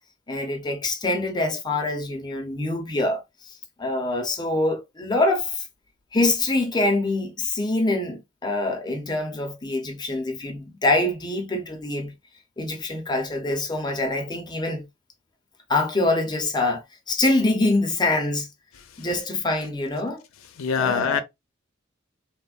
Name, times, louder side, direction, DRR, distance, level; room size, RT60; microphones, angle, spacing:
voice 1, 0.3-5.7 6.1-12.1 12.6-14.8 15.7-18.5 19.0-20.2 20.8-21.2, left 2 dB, 20° left, 0.6 m, -25 dB
voice 2, 18.8-19.2 20.6-21.2, left 6 dB, 75° left, 0.5 m, -26 dB
3.2 x 2.1 x 2.3 m
head